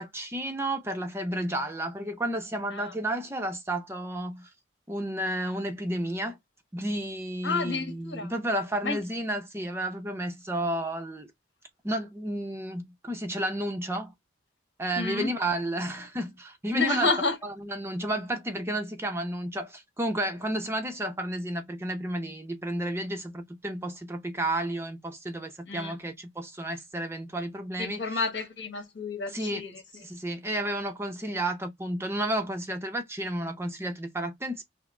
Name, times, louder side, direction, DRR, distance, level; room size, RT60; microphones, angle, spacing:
voice 1, 0.0-4.5 4.9-6.4 6.7-11.3 11.8-14.1 14.8-17.1 17.4-28.2 29.3-29.6 30.0-34.6, right 1 dB, 15° right, 0.6 m, -32 dB
voice 2, 7.4-8.3 8.8-9.0 15.0-15.3 16.7-17.3 25.7-25.9 27.8-29.7, left 3 dB, 65° left, 1.5 m, -30 dB
6.0 x 2.0 x 3.2 m
head